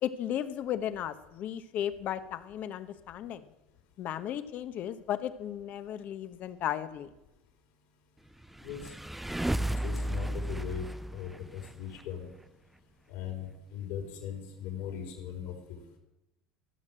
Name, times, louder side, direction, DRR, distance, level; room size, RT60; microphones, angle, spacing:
voice 1, 0.0-3.5 4.0-7.1, left 10 dB, 50° left, 12 dB, 1.0 m, -35 dB
sound 1, 8.4-12.0, right 1 dB, 5° right, 0.4 m, -34 dB
voice 2, 8.6-8.9 9.8-10.9 11.1-12.3 13.1-16.0, left 8 dB, 70° left, 1 dB, 4.5 m, -39 dB
15.5 x 6.6 x 7.6 m, 0.93 s
supercardioid pair, 110°, 4 cm